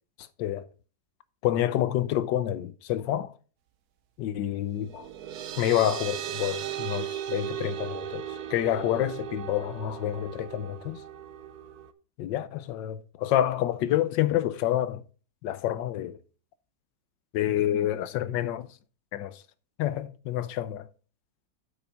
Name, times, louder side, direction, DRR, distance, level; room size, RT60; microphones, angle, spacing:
voice 1, 1.4-3.3 4.2-5.1 5.6-11.0 12.2-15.0 15.4-16.2 17.3-18.7 19.1-19.4 19.8-20.9, left 12 dB, 90° left, 1.4 m, -28 dB
sound 1, 4.8-11.9, right 10 dB, 65° right, 1.1 m, -37 dB
8.4 x 5.5 x 5.1 m
omnidirectional pair, 1.9 m